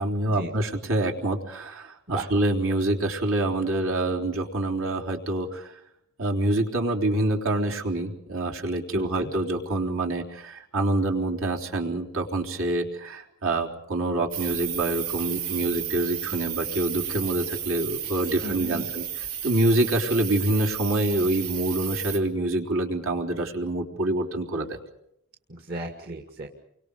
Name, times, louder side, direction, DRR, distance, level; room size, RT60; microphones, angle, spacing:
voice 1, 0.0-5.7 6.2-19.1 19.4-24.8, right 1 dB, 65° right, 0 dB, 3.8 m, -26 dB
voice 2, 8.9-9.3 18.4-18.9 25.5-26.5, right 1 dB, 45° right, 2 dB, 2.1 m, -35 dB
sound 1, 14.3-22.2, right 10 dB, 85° right, 3.0 m, -33 dB
30.0 x 24.5 x 5.2 m, 0.76 s
head